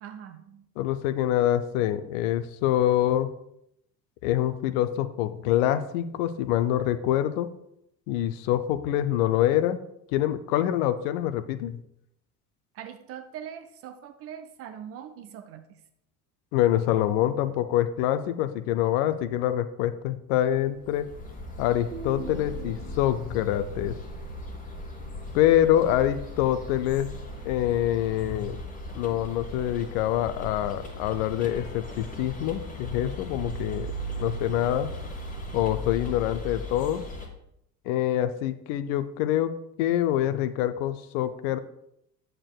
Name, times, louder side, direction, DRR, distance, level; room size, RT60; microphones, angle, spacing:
voice 1, 0.0-0.6 12.7-15.8, right 9 dB, 35° right, 9 dB, 0.4 m, -42 dB
voice 2, 0.8-3.3 4.2-7.5 8.1-9.8 10.1-11.8 16.5-21.1 21.6-24.0 25.3-27.1 27.4-28.6 28.9-34.9 35.5-37.0 37.9-39.5 39.8-41.6, left 12 dB, 50° left, 13 dB, 0.5 m, -25 dB
sound 1, 20.7-37.3, left 1 dB, 15° left, 1.2 m, -38 dB
sound 2, 21.9-27.2, right 5 dB, 90° right, 0.7 m, -46 dB
8.7 x 6.6 x 2.2 m, 0.78 s
figure-of-eight pair, 60°, 49 cm